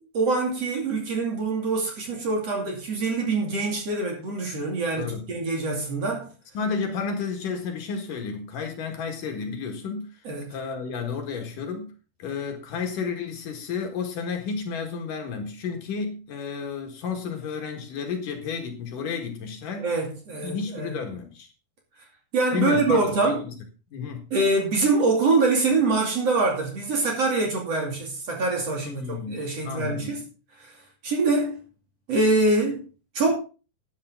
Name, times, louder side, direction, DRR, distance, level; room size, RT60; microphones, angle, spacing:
voice 1, 0.1-6.3 10.2-10.5 19.8-20.9 22.3-23.4 24.3-30.2 30.6-30.7 31.0-31.6 32.1-32.8 33.1-33.3, right 3 dB, 45° right, 3.4 m, -24 dB
voice 2, 6.5-10.1 10.5-11.9 12.2-19.9 20.4-21.5 22.5-23.6 23.9-24.3 28.8-30.2, left 5 dB, 65° left, 3.1 m, -32 dB
13.0 x 10.5 x 3.8 m
omnidirectional pair, 4.4 m